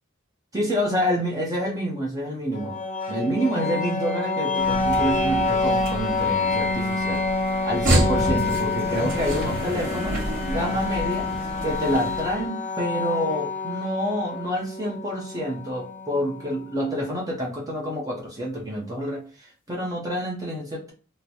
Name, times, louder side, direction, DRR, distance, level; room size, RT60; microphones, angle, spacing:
voice 1, 0.5-2.8 3.1-7.2 7.6-10.2 10.5-11.3 11.6-20.9, equal, 15° right, -4 dB, 0.8 m, -28 dB
sound 1, 2.5-16.5, left 3 dB, 40° left, 0.8 m, -27 dB
sound 2, 4.6-12.4, equal, 40° right, 1.2 m, -29 dB
3.1 x 2.2 x 4.0 m, 0.38 s
head